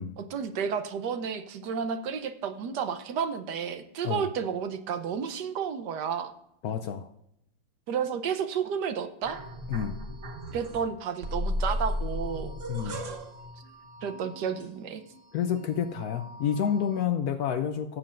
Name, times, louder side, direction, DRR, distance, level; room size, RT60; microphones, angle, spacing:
voice 1, 0.2-6.3 7.9-9.4 10.5-12.9 14.0-15.0, right 7 dB, 65° right, 9 dB, 1.3 m, -32 dB
voice 2, 6.6-7.1 9.7-10.0 12.7-13.0 15.3-18.0, left 8 dB, 75° left, 8 dB, 0.9 m, -29 dB
sound 1, 9.2-10.8 11.2-15.2 15.6-17.0, left 1 dB, 45° right, 1.2 m, -36 dB
15.5 x 7.4 x 2.5 m, 0.79 s
omnidirectional pair, 2.1 m